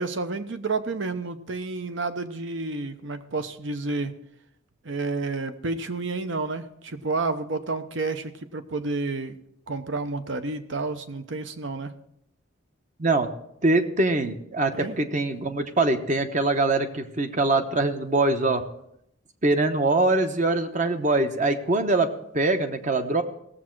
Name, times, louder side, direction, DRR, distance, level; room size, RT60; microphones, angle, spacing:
voice 1, 0.0-4.2 4.8-9.4 9.7-11.9 14.7-15.0, right 3 dB, 65° right, 10 dB, 0.9 m, -30 dB
voice 2, 13.6-18.6 19.4-23.2, right 2 dB, 40° right, 7 dB, 1.0 m, -23 dB
17.5 x 7.4 x 4.6 m, 0.76 s
head